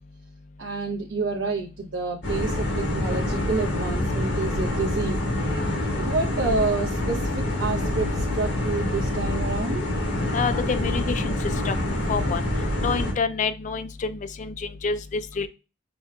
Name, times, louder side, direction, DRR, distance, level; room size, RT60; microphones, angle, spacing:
voice 1, 0.6-5.2 5.9-9.8, right 3 dB, 80° right, -1 dB, 0.7 m, -28 dB
sound 1, 2.2-13.1, left 1 dB, 65° left, 1.3 m, -26 dB
voice 2, 10.3-11.3 11.7-11.8 12.1-12.4 12.8-15.5, left 5 dB, 40° left, 10 dB, 0.3 m, -27 dB
6.0 x 2.2 x 2.2 m, 0.31 s
head